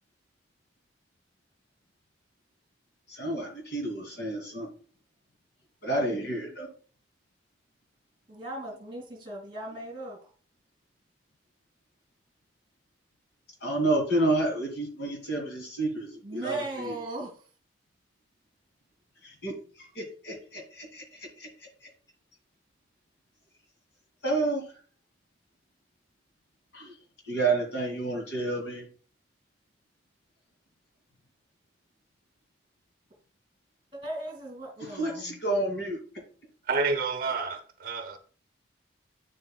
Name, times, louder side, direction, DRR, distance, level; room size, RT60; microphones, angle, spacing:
voice 1, 3.1-4.7 5.8-6.7 13.6-16.9 19.2-21.7 24.2-24.6 26.7-26.9 27.3-28.9 34.8-36.0, right 2 dB, 65° left, 2.5 m, -30 dB
voice 2, 8.3-10.2 16.2-17.3 33.9-35.4, right 1 dB, 25° right, 2.4 m, -38 dB
voice 3, 36.7-38.2, right 4 dB, 45° right, 0.8 m, -29 dB
8.7 x 7.7 x 2.3 m
head